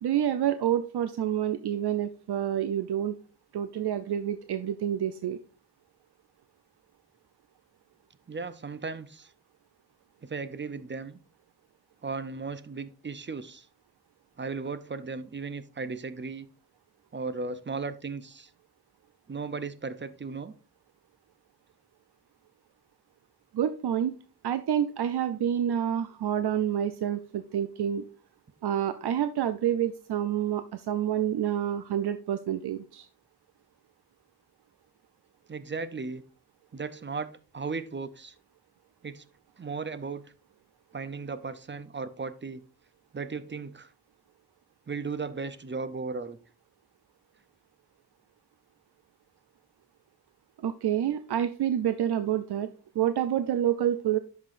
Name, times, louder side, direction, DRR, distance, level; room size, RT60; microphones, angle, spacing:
voice 1, 0.0-3.1 3.5-5.4 23.5-24.1 24.4-28.0 28.6-33.1 50.6-52.7 52.9-54.2, right 10 dB, 80° right, 0.5 m, -28 dB
voice 2, 8.3-9.3 10.2-11.2 12.0-13.7 14.4-16.5 17.1-18.5 19.3-20.5 35.5-36.2 36.7-38.3 39.0-39.2 39.6-40.2 40.9-42.6 43.1-43.9 44.9-46.4, right 4 dB, 30° right, 0.5 m, -36 dB
10.5 x 5.8 x 2.5 m
wide cardioid pair, 90°, 39 cm